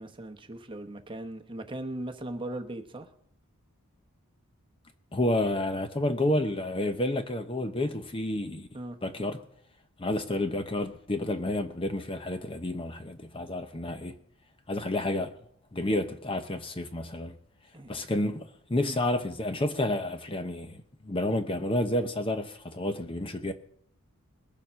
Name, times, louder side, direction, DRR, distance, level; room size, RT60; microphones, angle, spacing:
voice 1, 0.0-3.1 8.7-9.0 17.7-17.9 18.8-19.0, right 1 dB, 20° right, 1.0 m, -38 dB
voice 2, 5.1-8.7 9.0-9.4 10.0-14.1 14.7-15.3 15.7-17.4 17.9-23.5, left 1 dB, 25° left, 0.7 m, -30 dB
21.0 x 7.1 x 5.6 m
head